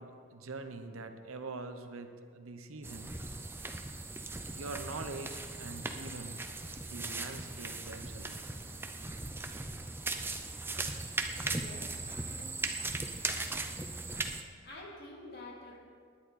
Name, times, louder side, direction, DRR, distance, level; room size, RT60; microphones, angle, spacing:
voice 1, 0.0-3.1 4.6-6.4 6.9-8.4, right 3 dB, 90° right, 8 dB, 1.0 m, -44 dB
sound 1, 2.8-14.4, right 3 dB, 10° right, 0.5 m, -38 dB
voice 2, 11.5-13.0 14.1-15.8, left 1 dB, 50° left, -3 dB, 2.9 m, -50 dB
19.5 x 10.0 x 4.3 m, 2.1 s
head